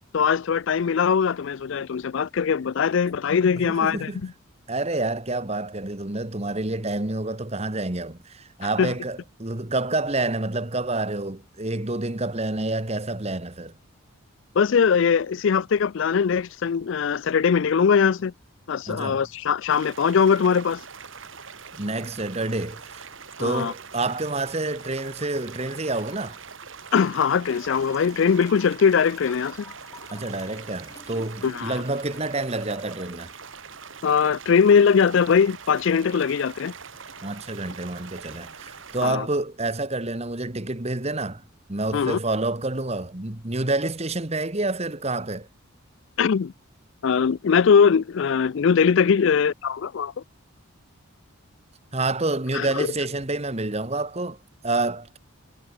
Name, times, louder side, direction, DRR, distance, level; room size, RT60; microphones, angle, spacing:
voice 1, 0.1-4.3 8.8-8.9 14.6-18.3 18.7-20.8 23.4-23.7 26.9-29.6 31.4-31.8 34.0-36.7 39.0-39.3 41.9-42.2 46.2-46.5 47.0-50.1 52.5-52.9, left 6 dB, 60° left, 0.4 m, -21 dB
voice 2, 3.6-4.2 4.7-13.7 18.9-19.2 21.8-23.0 23.4-26.4 30.1-33.3 37.2-41.4 41.7-45.5 51.9-55.2, right 2 dB, 30° right, 1.4 m, -28 dB
sound 1, 19.7-39.1, right 6 dB, 60° right, 2.2 m, -43 dB
sound 2, 25.6-26.5 27.5-34.5 35.9-36.0, left 2 dB, 15° left, 2.7 m, -49 dB
head